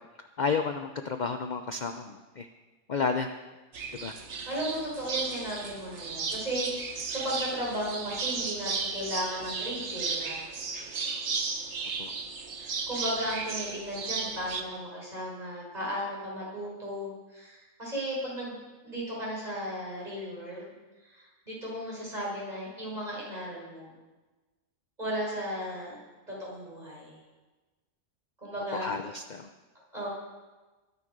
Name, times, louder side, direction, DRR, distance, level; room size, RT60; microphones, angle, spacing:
voice 1, 0.4-2.5 2.9-3.3 4.0-4.1 12.0-12.1 28.7-29.5, left 5 dB, 45° left, 7 dB, 0.7 m, -31 dB
sound 1, 3.7-14.6, right 4 dB, 65° right, 1.5 m, -35 dB
voice 2, 4.5-10.4 12.6-20.7 21.0-23.9 25.0-26.0 26.3-27.2 28.4-28.9 29.9-30.1, equal, 30° right, -5 dB, 6.0 m, -35 dB
22.5 x 9.7 x 5.3 m, 1.2 s
omnidirectional pair, 1.3 m